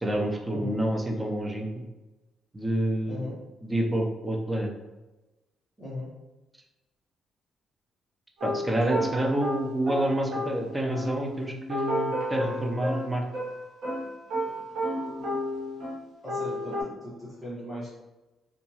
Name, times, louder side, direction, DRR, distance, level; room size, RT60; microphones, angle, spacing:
voice 1, 0.0-1.7 2.5-3.3 3.6-4.7 8.4-13.2, right 1 dB, 15° right, 1 dB, 0.5 m, -28 dB
voice 2, 5.8-6.1 16.2-17.9, left 1 dB, 10° left, -12 dB, 1.2 m, -37 dB
sound 1, 8.4-16.0 16.3-16.8, equal, 65° right, 0.8 m, -32 dB
2.8 x 2.3 x 2.8 m, 1.1 s
cardioid pair, 90°, 0 cm